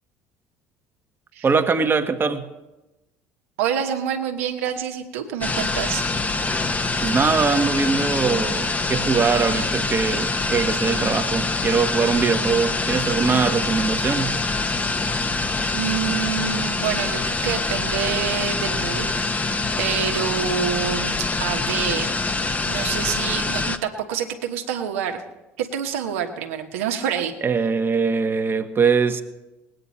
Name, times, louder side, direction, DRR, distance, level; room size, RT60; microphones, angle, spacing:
voice 1, 1.4-2.5 7.0-14.4 27.4-29.2, right 5 dB, 30° right, 1.2 m, -22 dB
voice 2, 3.6-6.0 15.2-15.4 15.7-19.5 19.8-25.2 25.6-27.3, right 8 dB, 75° right, 1.3 m, -27 dB
sound 1, 5.4-23.8, left 3 dB, 20° left, 1.0 m, -25 dB
20.5 x 9.1 x 4.2 m
figure-of-eight pair, 60°, 7 cm